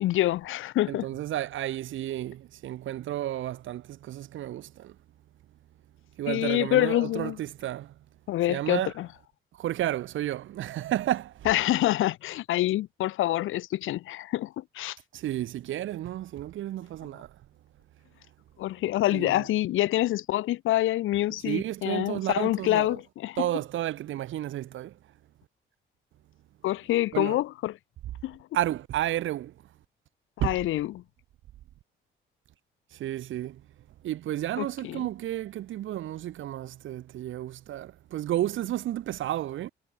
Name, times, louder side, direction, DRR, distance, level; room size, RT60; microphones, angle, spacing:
voice 1, 0.0-1.1 6.3-7.4 8.3-9.1 11.4-15.0 18.6-23.5 26.6-27.7 28.2-28.4 30.4-31.0 34.6-35.1, left 15 dB, 90° left, 4.7 m, -26 dB
voice 2, 0.9-5.0 6.2-7.9 8.5-8.9 9.6-11.5 15.1-17.3 19.1-19.4 21.4-23.0 23.4-24.9 27.1-27.4 28.5-29.5 30.4-30.6 32.9-33.6 34.0-39.7, right 13 dB, 80° right, 3.6 m, -32 dB
cardioid pair, 90°, 20 cm